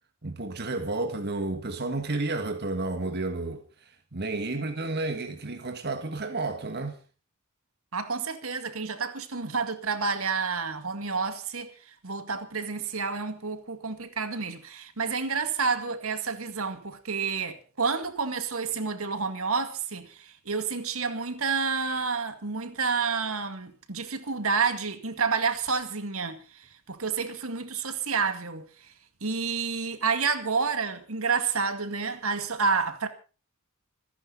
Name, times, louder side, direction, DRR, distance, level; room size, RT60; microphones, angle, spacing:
voice 1, 0.2-3.6 4.1-7.0, right 2 dB, 50° right, 1.8 m, -31 dB
voice 2, 7.9-28.9 29.2-33.1, right 5 dB, 70° right, 2.1 m, -29 dB
26.5 x 10.5 x 4.0 m
head